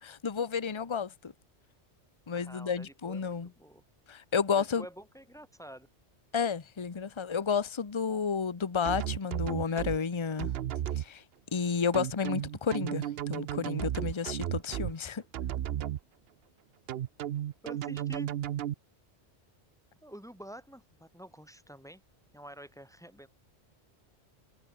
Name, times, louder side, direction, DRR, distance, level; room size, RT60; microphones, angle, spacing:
voice 1, 0.0-1.3 2.3-3.5 4.1-4.8 6.3-10.5 11.0-11.2 11.5-15.2, left 6 dB, 25° left, 0.9 m, -31 dB
voice 2, 2.3-3.8 4.5-5.9 17.6-18.3 20.0-22.0 22.3-23.3, equal, 5° left, 3.8 m, -48 dB
sound 1, 8.8-10.0 10.4-11.0 11.9-14.9 15.3-16.0 16.9-18.7, right 11 dB, 65° right, 0.8 m, -33 dB
omnidirectional pair, 1.2 m